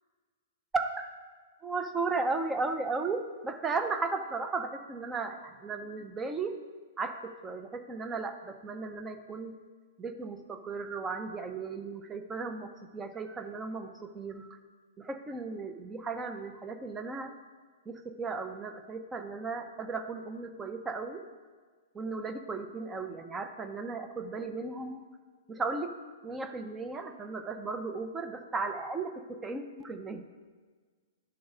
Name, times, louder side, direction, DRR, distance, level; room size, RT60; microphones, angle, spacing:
voice 1, 0.7-1.1 1.6-6.6 7.0-9.5 10.0-14.6 15.0-17.4 17.9-21.3 21.9-25.0 25.5-25.9 26.2-30.2, right 4 dB, 10° right, 7 dB, 0.5 m, -35 dB
10.5 x 3.9 x 5.4 m, 1.5 s
hypercardioid pair, 160°, 0 cm